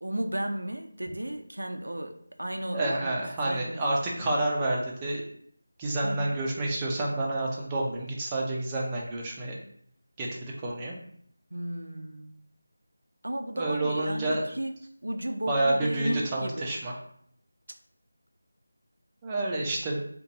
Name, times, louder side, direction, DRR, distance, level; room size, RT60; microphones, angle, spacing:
voice 1, 0.0-3.1 3.4-4.0 4.3-4.4 6.0-6.4 11.5-12.4 13.2-16.9, right 1 dB, 85° right, 5 dB, 0.4 m, -34 dB
voice 2, 2.7-5.2 5.8-9.5 10.2-11.0 13.6-14.4 15.5-16.9 19.2-20.0, right 2 dB, 15° right, -3 dB, 0.5 m, -29 dB
2.6 x 2.2 x 3.9 m, 0.65 s
figure-of-eight pair, 170°, 0 cm